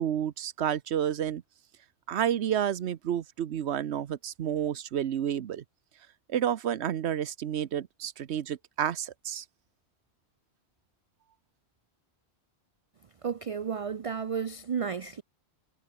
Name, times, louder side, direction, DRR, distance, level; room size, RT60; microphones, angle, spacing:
voice 1, 0.0-1.4 2.1-5.6 6.3-9.4, right 9 dB, 85° right, 1.1 m, -30 dB
voice 2, 13.2-15.2, right 6 dB, 45° right, 0.5 m, -32 dB
omnidirectional pair, 1.1 m